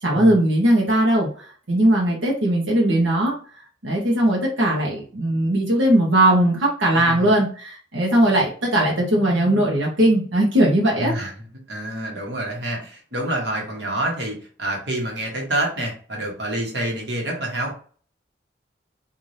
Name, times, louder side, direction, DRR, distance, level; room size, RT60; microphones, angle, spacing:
voice 1, 0.0-3.4 3.8-11.2, right 1 dB, 85° right, -2 dB, 1.0 m, -19 dB
voice 2, 6.9-7.3 11.0-17.7, right 1 dB, 60° right, 0 dB, 1.3 m, -27 dB
4.0 x 2.6 x 3.2 m, 0.42 s
head